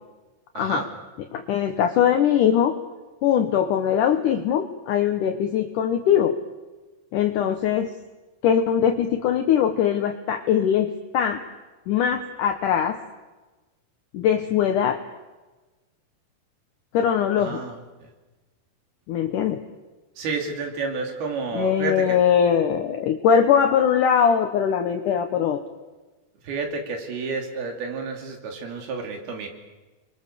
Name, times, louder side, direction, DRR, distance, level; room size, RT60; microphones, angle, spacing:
voice 1, 1.3-2.8 3.2-6.4 7.1-7.9 8.4-11.4 11.9-13.0 14.1-15.0 16.9-17.6 19.1-19.6 21.5-25.6, left 8 dB, 70° left, 5 dB, 2.3 m, -21 dB
voice 2, 17.4-17.8 20.2-22.2 26.4-29.5, right 4 dB, 85° right, 3 dB, 4.7 m, -30 dB
29.5 x 22.0 x 6.8 m, 1.2 s
omnidirectional pair, 4.3 m